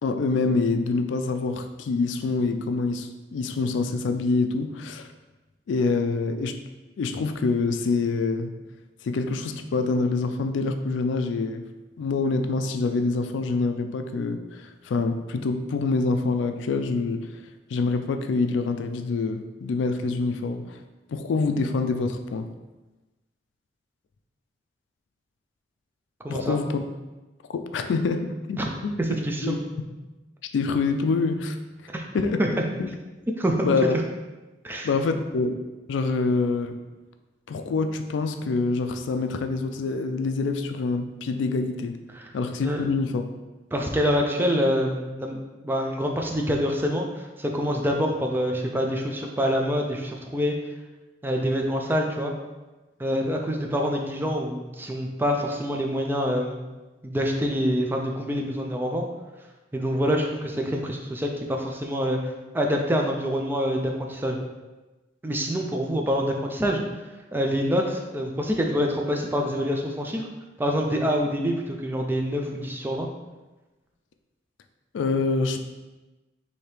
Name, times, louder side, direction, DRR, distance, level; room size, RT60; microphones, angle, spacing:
voice 1, 0.0-5.1 5.7-6.5 7.0-8.5 9.0-11.6 12.0-17.3 17.7-20.8 21.1-22.5 26.3-26.8 27.5-29.0 29.4-29.6 30.5-31.6 32.1-32.4 32.8-32.9 33.6-34.0 34.8-36.8 37.5-42.0 42.3-43.2 74.9-75.6, left 3 dB, 80° left, 7 dB, 0.3 m, -26 dB
voice 2, 26.2-26.6 28.6-28.7 29.0-29.6 31.9-32.0 32.4-32.7 33.4-33.7 34.6-34.9 42.1-42.3 42.6-42.9 43.7-50.5 51.2-52.3 53.0-56.7 57.0-59.0 59.7-64.4 65.2-66.8 67.3-70.3 70.6-73.1, equal, 10° right, 1 dB, 0.4 m, -26 dB
4.4 x 2.8 x 3.3 m, 1.1 s
head